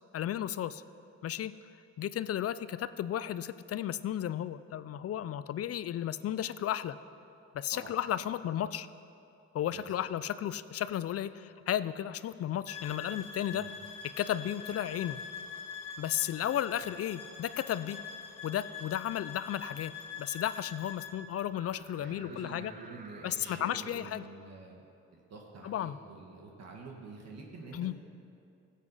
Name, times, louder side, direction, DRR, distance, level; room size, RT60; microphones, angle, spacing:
voice 1, 0.1-0.8 1.2-1.5 2.0-7.0 7.5-8.9 9.5-13.6 14.2-15.2 16.0-18.0 18.4-19.9 20.2-22.7 23.2-24.2 25.6-26.0 27.7-27.9, left 11 dB, 50° left, 15 dB, 0.5 m, -34 dB
sound 1, 12.7-21.2, left 6 dB, 90° left, 1.5 m, -44 dB
sound 2, 21.5-23.8, right 4 dB, 25° right, 0.9 m, -54 dB
voice 2, 22.0-24.9 25.1-27.9, right 4 dB, 60° right, -1 dB, 1.7 m, -48 dB
16.5 x 7.5 x 5.6 m, 2.6 s
cardioid pair, 90°, 30 cm